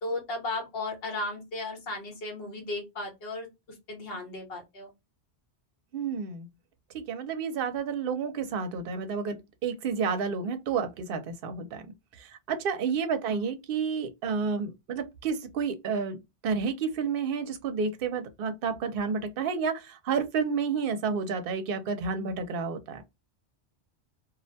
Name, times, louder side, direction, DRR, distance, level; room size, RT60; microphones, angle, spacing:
voice 1, 0.0-3.5 3.9-4.9 13.2-13.4, left 2 dB, 60° left, 1.2 m, -35 dB
voice 2, 5.9-6.5 6.9-11.8 12.2-23.0, right 5 dB, 60° right, 0.7 m, -30 dB
2.4 x 2.1 x 2.6 m
omnidirectional pair, 1.1 m